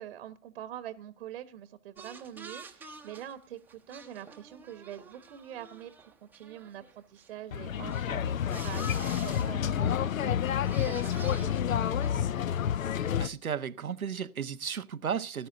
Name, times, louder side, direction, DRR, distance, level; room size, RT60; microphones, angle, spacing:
voice 1, 0.0-12.3, right 11 dB, 45° right, 1.1 m, -45 dB
sound 1, 2.0-7.3 7.7-8.1 8.5-9.6 10.1-10.3 10.5-12.2 12.5-12.6, right 5 dB, 5° right, 0.8 m, -49 dB
sound 2, 7.5-13.3, left 9 dB, 65° left, 0.6 m, -29 dB
voice 2, 13.2-15.5, right 7 dB, 75° right, 0.9 m, -34 dB
18.5 x 11.0 x 3.8 m
figure-of-eight pair, 115°, 43 cm